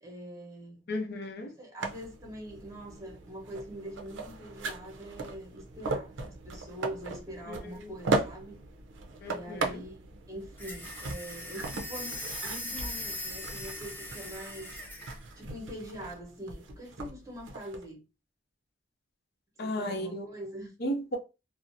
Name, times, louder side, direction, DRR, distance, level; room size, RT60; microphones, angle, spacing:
voice 1, 0.0-0.9 1.6-8.6 9.3-14.8 15.3-18.0 19.6-20.7, equal, 15° right, 0.8 m, -43 dB
voice 2, 0.9-1.5 7.5-7.9 9.2-9.8 19.6-20.3 20.8-21.2, equal, 55° left, 0.6 m, -34 dB
sound 1, 1.8-17.8, right 3 dB, 75° right, 0.5 m, -38 dB
sound 2, 10.6-15.2, left 2 dB, 10° left, 0.7 m, -40 dB
2.5 x 2.0 x 2.6 m
head